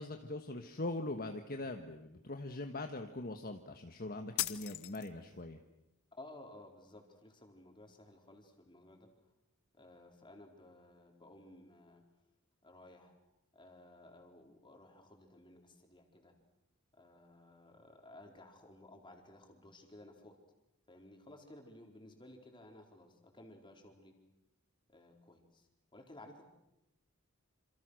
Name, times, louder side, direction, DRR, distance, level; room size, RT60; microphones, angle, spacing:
voice 1, 0.0-5.6, left 2 dB, 40° left, 5 dB, 1.4 m, -42 dB
sound 1, 4.4-5.4, left 14 dB, 75° left, 1.1 m, -38 dB
voice 2, 6.1-9.3 9.7-12.0 12.6-13.1 13.5-16.4 16.9-20.4 20.9-24.1 24.9-26.4, left 1 dB, 20° left, 2 dB, 4.3 m, -56 dB
27.5 x 27.5 x 6.5 m, 0.88 s
head